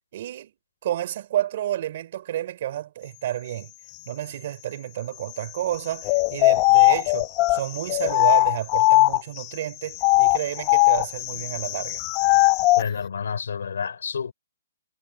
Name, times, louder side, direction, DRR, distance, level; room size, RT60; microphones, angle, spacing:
voice 1, 0.1-0.5 0.8-3.7 4.1-12.0, right 12 dB, 45° right, 3.9 m, -30 dB
sound 1, 6.0-9.4 9.9-12.9, left 22 dB, 25° left, 0.8 m, -19 dB
voice 2, 12.8-14.3, left 6 dB, 80° left, 5.6 m, -29 dB
hypercardioid pair, 165°, 0 cm